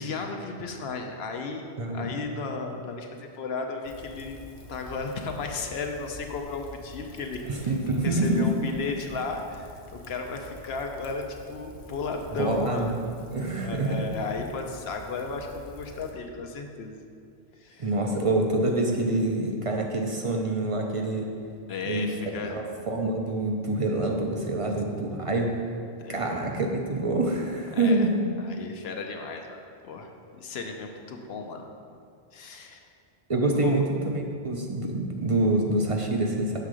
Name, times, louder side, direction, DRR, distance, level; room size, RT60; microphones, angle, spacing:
voice 1, 0.0-4.4 4.7-7.4 8.0-9.8 10.1-12.9 13.6-17.0 17.6-17.9 21.7-22.6 26.0-26.4 27.7-28.1 28.4-31.6 32.3-32.8 33.6-33.8, left 4 dB, 70° left, 3 dB, 0.9 m, -34 dB
voice 2, 1.8-2.1 7.4-8.5 12.3-14.1 17.8-21.3 21.9-25.7 26.1-28.1 33.3-36.6, right 2 dB, 40° right, 1 dB, 0.5 m, -26 dB
Rain, 3.8-16.1, left 2 dB, 35° left, 0.6 m, -47 dB
6.7 x 3.6 x 6.1 m, 2.3 s
omnidirectional pair, 1.1 m